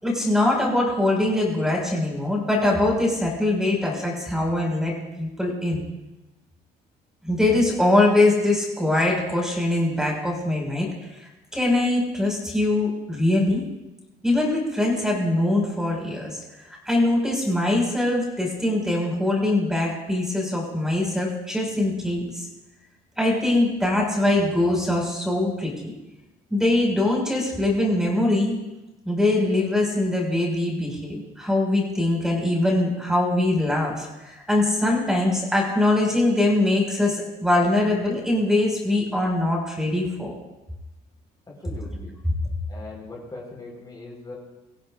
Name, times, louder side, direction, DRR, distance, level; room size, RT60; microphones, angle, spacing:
voice 1, 0.0-5.8 7.2-10.9 11.5-13.6 14.2-16.4 16.9-22.5 23.2-25.9 26.5-28.6 29.1-40.3, left 2 dB, 5° right, -1 dB, 5.5 m, -22 dB
voice 2, 41.5-42.1 42.7-44.3, left 2 dB, 25° left, -3 dB, 4.6 m, -40 dB
25.0 x 15.5 x 2.6 m, 0.99 s
cardioid pair, 110°, 17 cm